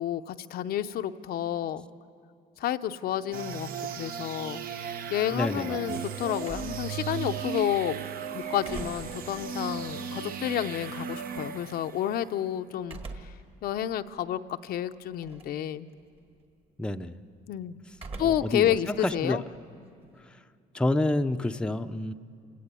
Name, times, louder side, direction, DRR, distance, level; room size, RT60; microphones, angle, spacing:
voice 1, 0.0-1.9 2.6-4.6 5.1-8.0 8.3-13.0 13.6-15.9 17.5-17.8 18.2-19.4, left 11 dB, 65° left, 9 dB, 0.7 m, -30 dB
sound 1, 3.3-12.2, right 7 dB, 60° right, 1.0 m, -36 dB
voice 2, 5.3-6.0 16.8-17.1 18.2-19.4 20.7-22.1, left 1 dB, 5° left, 7 dB, 0.6 m, -29 dB
sound 2, 6.4-8.0 8.4-11.0 12.8-13.5 14.0-14.1 15.1-15.6 15.9-16.4 17.9-18.6 18.9-20.3, right 3 dB, 35° right, 1.8 m, -44 dB
28.0 x 18.0 x 8.3 m, 2.4 s
cardioid pair, 110°, 17 cm